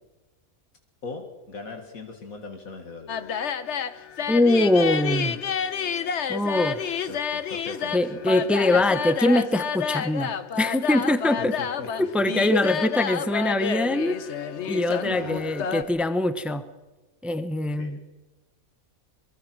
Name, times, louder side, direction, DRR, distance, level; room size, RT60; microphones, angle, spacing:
voice 1, 1.0-3.2 3.6-3.7 7.0-8.4 11.4-12.1 15.0-16.1 17.8-18.0, left 4 dB, 75° left, 4 dB, 2.3 m, -39 dB
sound 1, 3.1-15.8, left 7 dB, 55° left, 1.2 m, -29 dB
voice 2, 4.3-5.4 6.3-6.8 7.9-11.5 12.0-14.2 14.7-16.6 17.2-18.0, left 1 dB, ahead, 11 dB, 1.0 m, -23 dB
24.0 x 23.0 x 6.3 m, 1.1 s
omnidirectional pair, 1.5 m